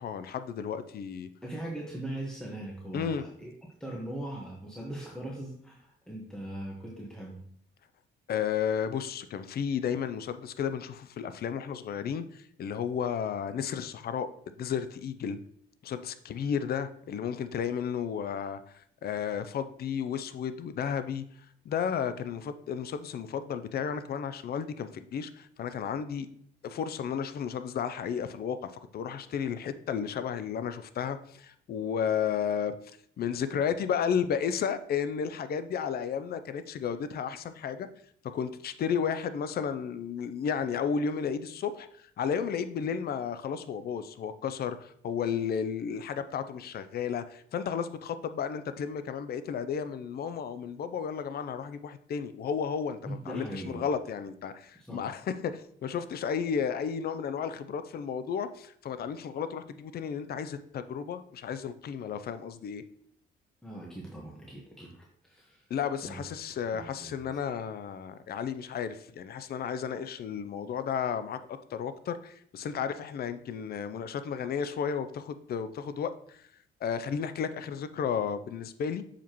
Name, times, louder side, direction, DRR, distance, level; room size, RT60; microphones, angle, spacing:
voice 1, 0.0-1.3 2.9-3.2 8.3-15.4 15.8-21.2 21.7-26.3 26.6-32.7 33.2-37.9 38.3-62.8 65.7-76.4 76.8-79.0, left 7 dB, 50° left, 11 dB, 0.5 m, -33 dB
voice 2, 1.4-3.5 3.8-7.4 53.0-53.8 54.7-55.0 63.6-65.7 66.0-66.2 66.7-67.3, right 1 dB, 5° left, -3 dB, 1.3 m, -40 dB
6.9 x 4.9 x 3.0 m, 0.66 s
cardioid pair, 90°, 20 cm